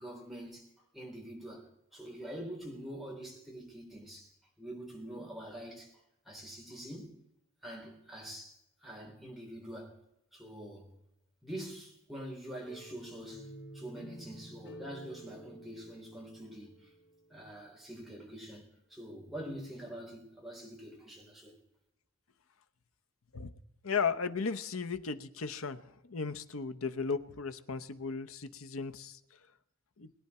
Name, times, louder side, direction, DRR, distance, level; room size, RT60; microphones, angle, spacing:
voice 1, 0.0-4.3 4.6-5.9 6.3-7.1 7.6-8.6 8.8-10.0 10.3-10.9 11.4-16.9 17.3-18.6 18.9-21.5, right 1 dB, ahead, 3.7 m, -45 dB
sound 1, 12.6-17.5, right 1 dB, 55° left, 2.8 m, -51 dB
voice 2, 23.8-29.2 30.0-30.1, left 5 dB, 85° left, 0.9 m, -35 dB
22.0 x 9.9 x 4.3 m
head